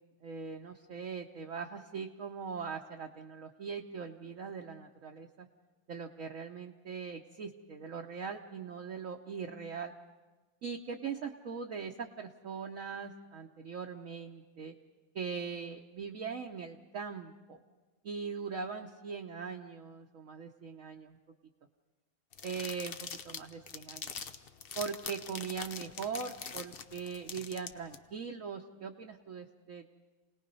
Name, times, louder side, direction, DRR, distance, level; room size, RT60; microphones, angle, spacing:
voice 1, 0.2-5.5 5.9-9.9 10.6-14.7 15.1-17.6 18.0-21.2 22.4-24.1 24.7-29.9, right 5 dB, 55° right, 2 dB, 1.0 m, -41 dB
sound 1, 22.3-28.0, left 6 dB, 85° left, 0.5 m, -43 dB
28.5 x 19.0 x 5.4 m, 1.3 s
omnidirectional pair, 2.1 m